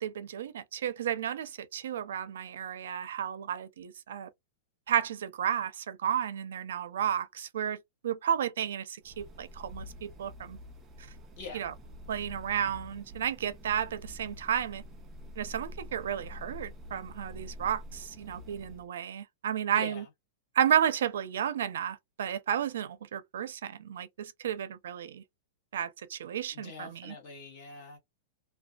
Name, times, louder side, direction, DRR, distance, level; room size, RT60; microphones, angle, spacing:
voice 1, 0.0-4.3 4.9-7.8 8.0-10.6 11.5-11.7 12.1-14.8 15.4-20.0 20.6-25.2 25.7-27.1, right 9 dB, 80° right, 0.4 m, -32 dB
sound 1, 9.0-18.9, left 1 dB, 15° right, 0.3 m, -47 dB
voice 2, 19.7-20.1 26.5-28.0, left 4 dB, 35° left, 1.2 m, -44 dB
2.5 x 2.2 x 2.2 m
supercardioid pair, 175°, 0 cm